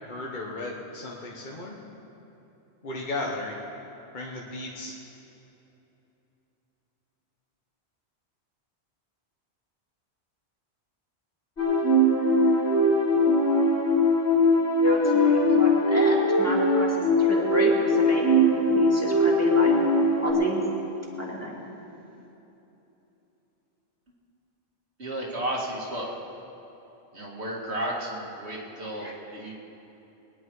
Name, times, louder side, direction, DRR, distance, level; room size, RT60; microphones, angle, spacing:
voice 1, 0.0-1.7 2.8-3.5 4.1-4.9, left 2 dB, 45° left, -2 dB, 1.3 m, -35 dB
sound 1, 11.6-20.3, left 1 dB, 90° left, 3.2 m, -21 dB
voice 2, 14.8-16.9 17.2-19.7 20.2-20.6 21.2-21.6 29.0-29.1, equal, 15° left, -3 dB, 2.2 m, -30 dB
voice 3, 25.0-26.1 27.1-29.6, right 1 dB, 80° right, -3 dB, 2.6 m, -33 dB
22.0 x 10.5 x 4.8 m, 3.0 s
omnidirectional pair, 1.1 m